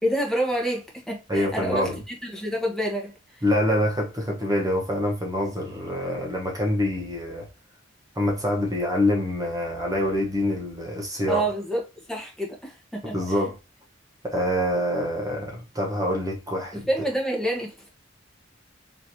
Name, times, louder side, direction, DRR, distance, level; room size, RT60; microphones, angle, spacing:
voice 1, 0.0-3.1 11.3-11.8 12.1-13.1 16.9-17.9, right 1 dB, ahead, 1.2 m, -27 dB
voice 2, 1.3-2.0 3.4-7.5 8.1-11.5 13.1-13.6 14.2-16.9, left 1 dB, 20° right, 1.0 m, -25 dB
4.4 x 3.1 x 2.8 m
head